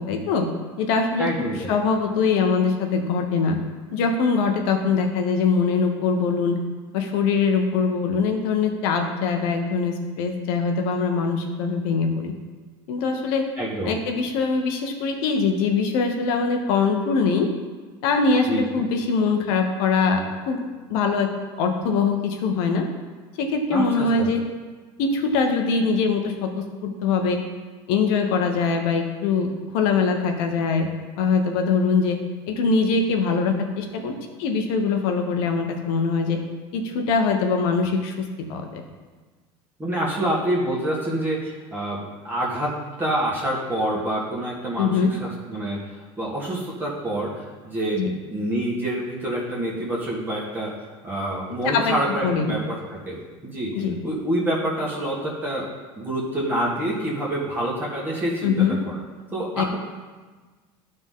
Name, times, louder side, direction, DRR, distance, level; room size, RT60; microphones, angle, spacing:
voice 1, 0.1-0.5 0.8-1.3 1.7-3.6 3.9-6.6 6.9-12.3 12.9-13.4 13.8-17.5 18.0-20.6 20.9-21.3 21.6-22.9 23.4-24.4 25.0-27.4 27.9-29.5 29.7-30.9 31.2-32.2 32.5-34.1 34.4-36.4 36.7-38.8 44.8-45.1 48.0-48.1 51.7-51.9 52.2-52.6 53.7-54.0 58.4-58.8 59.6-59.7, left 5 dB, 75° left, 4 dB, 1.2 m, -22 dB
voice 2, 1.2-1.7 13.6-14.0 18.5-18.8 23.7-24.3 39.8-45.8 46.2-48.0 48.3-52.8 53.0-53.7 54.0-55.7 56.0-59.0 59.3-59.8, right 1 dB, 15° right, -6 dB, 1.7 m, -27 dB
12.0 x 4.0 x 3.8 m, 1.4 s
supercardioid pair, 125°, 13 cm